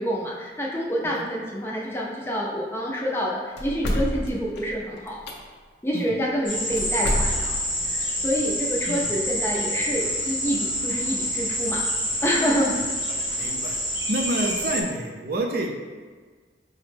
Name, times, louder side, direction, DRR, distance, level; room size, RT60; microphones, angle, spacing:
voice 1, 0.0-5.2 5.8-7.6 7.9-11.8 12.2-12.8, equal, 15° left, -3 dB, 0.4 m, -27 dB
sound 1, 3.6-5.3 6.8-7.8, equal, 60° left, 0.5 m, -28 dB
sound 2, 6.5-14.8, equal, 25° right, 0.9 m, -27 dB
voice 2, 13.1-13.8 14.1-15.7, right 1 dB, 55° right, 2 dB, 0.4 m, -29 dB
4.9 x 2.1 x 3.2 m, 1.5 s
head